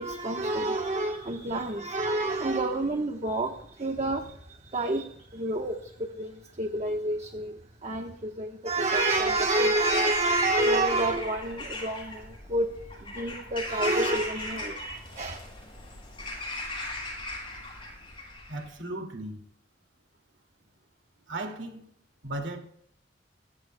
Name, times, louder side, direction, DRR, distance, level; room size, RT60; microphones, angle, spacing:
voice 1, 0.0-12.7 13.0-15.4, right 2 dB, 35° right, 4 dB, 1.1 m, -28 dB
Bird vocalization bird call bird song / Crow, 8.8-18.7, left 2 dB, 30° left, 8.0 m, -38 dB
voice 2, 18.5-19.4 21.3-21.8 22.2-22.6, right 2 dB, 90° right, 3 dB, 2.3 m, -36 dB
25.5 x 15.0 x 2.2 m, 0.68 s
head